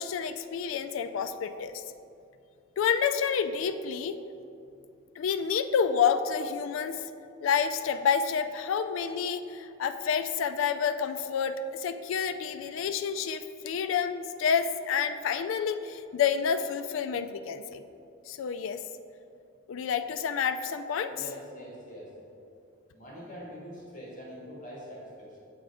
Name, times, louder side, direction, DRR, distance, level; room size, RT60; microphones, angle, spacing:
voice 1, 0.0-1.8 2.8-4.2 5.2-7.0 7.4-17.8 18.3-18.8 19.7-21.1, left 7 dB, 70° left, 9 dB, 0.3 m, -29 dB
voice 2, 21.1-22.1 22.9-25.4, equal, 40° left, -5 dB, 1.5 m, -44 dB
7.8 x 3.8 x 4.8 m, 2.6 s
head